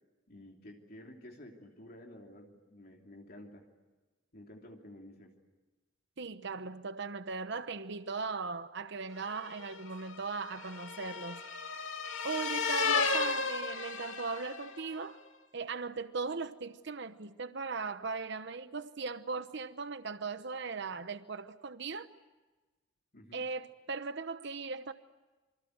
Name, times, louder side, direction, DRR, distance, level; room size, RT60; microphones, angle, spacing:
voice 1, 0.3-3.7 4.3-5.3 23.1-23.4, left 1 dB, 50° left, 3.2 m, -51 dB
voice 2, 6.2-11.4 12.2-15.2 15.5-22.1 23.3-24.9, right 4 dB, 60° right, 0.9 m, -38 dB
sound 1, 9.4-14.8, left 4 dB, 75° left, 2.3 m, -34 dB
27.5 x 25.0 x 8.0 m
head